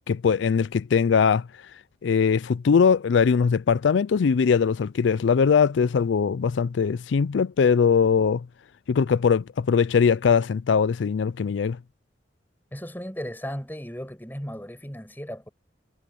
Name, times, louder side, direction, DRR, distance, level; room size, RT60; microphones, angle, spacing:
voice 1, 0.1-1.5 2.0-8.5 8.9-11.8, left 6 dB, 85° left, 0.4 m, -21 dB
voice 2, 12.7-15.5, equal, 10° left, 5.4 m, -35 dB
head